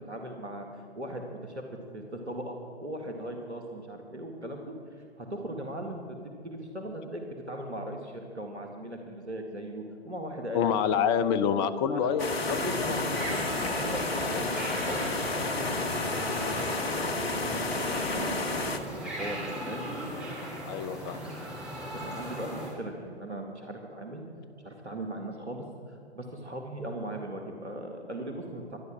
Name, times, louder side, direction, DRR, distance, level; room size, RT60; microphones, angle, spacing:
voice 1, 0.1-1.6 1.9-6.2 6.4-10.6 11.8-12.1 12.6-13.5 13.7-14.5 14.9-17.2 17.5-19.8 22.0-24.2 24.6-28.8, right 1 dB, 85° right, 3 dB, 2.0 m, -39 dB
voice 2, 10.5-12.6 14.3-14.4 20.7-21.2, left 7 dB, 20° left, 12 dB, 0.6 m, -27 dB
sound 1, 12.2-18.8, left 3 dB, 65° left, 1.7 m, -31 dB
sound 2, 12.3-22.7, equal, ahead, 4.6 m, -38 dB
25.0 x 9.8 x 6.0 m, 2.7 s
figure-of-eight pair, 120°, 33 cm